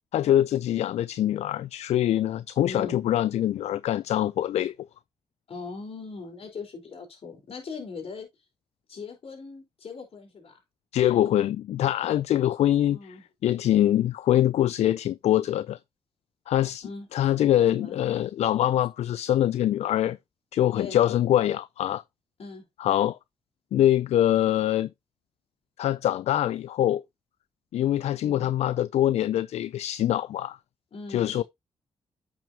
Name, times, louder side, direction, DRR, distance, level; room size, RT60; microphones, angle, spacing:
voice 1, 0.1-4.7 10.9-13.0 13.4-15.8 16.5-20.2 20.5-22.0 22.8-23.2 23.7-24.9 25.8-27.0 27.7-30.6 31.1-31.4, left 12 dB, 80° left, 0.4 m, -24 dB
voice 2, 2.6-3.0 5.5-8.3 8.9-10.6 12.7-13.2 16.8-17.1 17.7-18.0 20.7-21.0 22.4-22.6 28.2-28.5 30.9-31.4, left 4 dB, 60° left, 4.4 m, -40 dB
8.5 x 6.2 x 2.8 m
cardioid pair, 65°, 11 cm